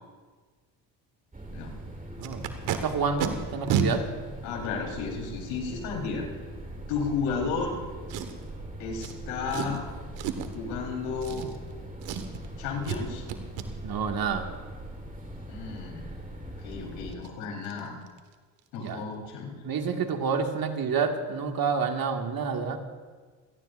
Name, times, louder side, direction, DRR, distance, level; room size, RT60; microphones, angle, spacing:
sound 1, 1.3-17.1, right 1 dB, 20° right, 3.9 m, -41 dB
voice 1, 2.2-4.1 13.8-14.5 18.8-19.0 19.6-22.8, right 5 dB, 50° right, 4 dB, 2.1 m, -29 dB
Packing tape duct tape, 2.2-2.8 3.2-3.3 3.7-3.9 4.7-4.8 8.1-8.5 9.0-9.1 9.5-9.8 10.2-10.6 11.2-11.7 12.0-12.5 12.8-13.0 13.3-13.7 16.7-16.8 17.1-17.3 17.6-17.8 18.1-18.3 18.6-18.7, right 8 dB, 75° right, 1.6 m, -31 dB
voice 2, 4.4-6.3 6.9-7.8 8.8-9.8 10.5-11.5 12.6-13.2 15.5-16.1 16.6-17.9 18.7-19.5, left 5 dB, 85° left, -1 dB, 4.2 m, -33 dB
27.0 x 17.5 x 2.6 m, 1.5 s
supercardioid pair, 65°, 46 cm